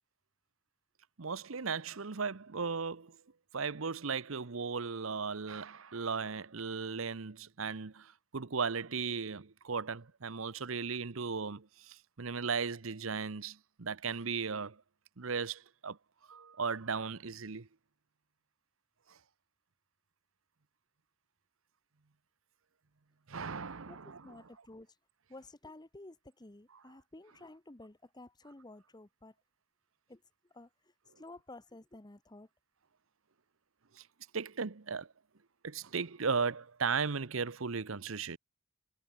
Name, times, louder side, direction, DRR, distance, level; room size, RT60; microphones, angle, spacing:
voice 1, 1.2-3.2 3.5-14.8 15.2-16.0 16.3-17.7 23.3-24.2 34.0-34.1 34.3-35.1 35.6-38.4, right 5 dB, 75° right, 0.9 m, -36 dB
voice 2, 23.9-24.9 25.3-29.3 30.1-30.2 30.5-30.7 31.2-32.5, left 2 dB, 20° left, 1.1 m, -52 dB
head